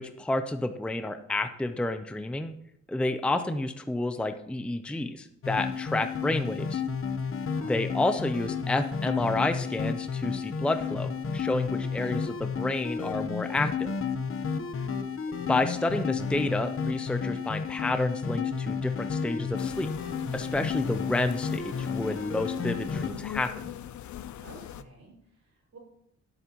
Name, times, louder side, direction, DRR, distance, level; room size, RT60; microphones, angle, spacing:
voice 1, 0.0-2.5 2.9-6.8 7.6-13.9 15.5-19.9 20.3-23.7, left 2 dB, 5° left, 8 dB, 0.5 m, -30 dB
sound 1, 5.4-23.1, left 6 dB, 45° left, 1.0 m, -32 dB
voice 2, 7.5-7.8 11.8-12.2 24.4-25.8, right 2 dB, 60° right, -3 dB, 5.1 m, -52 dB
sound 2, 19.6-24.8, left 11 dB, 75° left, 0.6 m, -41 dB
17.5 x 8.1 x 3.0 m, 0.74 s
cardioid pair, 110°, 29 cm